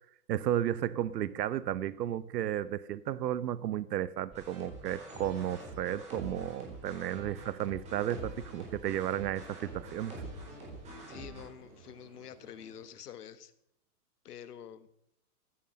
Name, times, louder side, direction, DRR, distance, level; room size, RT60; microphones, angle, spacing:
voice 1, 0.3-10.1, right 11 dB, 90° right, 17 dB, 0.8 m, -33 dB
sound 1, 4.3-11.4, right 2 dB, 15° right, 4.4 m, -45 dB
Ocean, 6.1-12.9, right 3 dB, 50° right, 7.2 m, -57 dB
voice 2, 11.1-13.5 14.2-14.9, left 9 dB, 75° left, 13 dB, 1.6 m, -47 dB
15.5 x 11.0 x 6.4 m, 0.73 s
hypercardioid pair, 170°, 47 cm